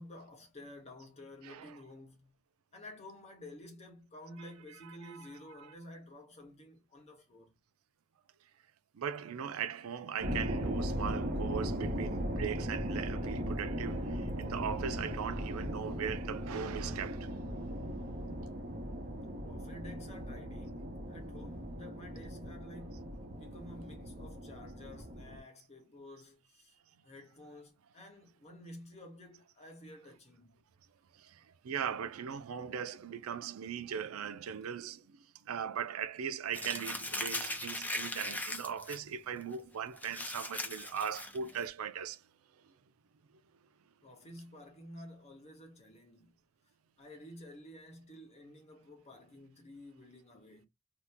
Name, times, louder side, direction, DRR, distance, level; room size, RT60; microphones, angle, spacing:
voice 1, 0.0-2.3 2.7-7.6 19.4-23.0 23.3-26.7 27.0-30.7 44.0-46.3 47.0-50.7, left 1 dB, 30° left, 1.0 m, -51 dB
voice 2, 1.4-1.8 4.8-5.3 5.6-5.7 8.9-17.4 31.1-42.2 42.6-42.7, right 7 dB, 80° right, 0.4 m, -39 dB
sound 1, 10.2-25.4, equal, 45° right, 0.9 m, -38 dB
Crumpling crinkling, 36.5-39.0 39.4-39.5 40.0-41.6, left 1 dB, 10° left, 0.5 m, -39 dB
2.8 x 2.1 x 3.4 m
head